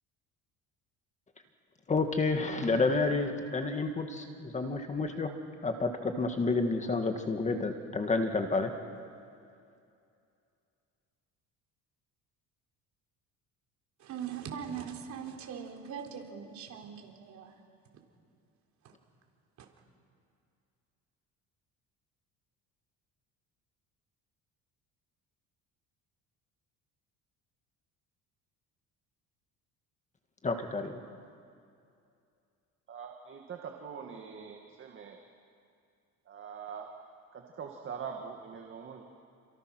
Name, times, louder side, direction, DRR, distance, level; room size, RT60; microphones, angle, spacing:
voice 1, 1.9-5.3 5.6-8.7 30.4-31.0, left 3 dB, 20° left, 5 dB, 1.7 m, -30 dB
voice 2, 14.0-17.5 19.6-19.7, right 8 dB, 55° right, 1 dB, 3.9 m, -41 dB
voice 3, 32.9-35.2 36.3-36.9 37.3-39.0, right 6 dB, 35° right, 2 dB, 2.0 m, -43 dB
29.0 x 27.0 x 6.3 m, 2.5 s
cardioid pair, 140°, 33 cm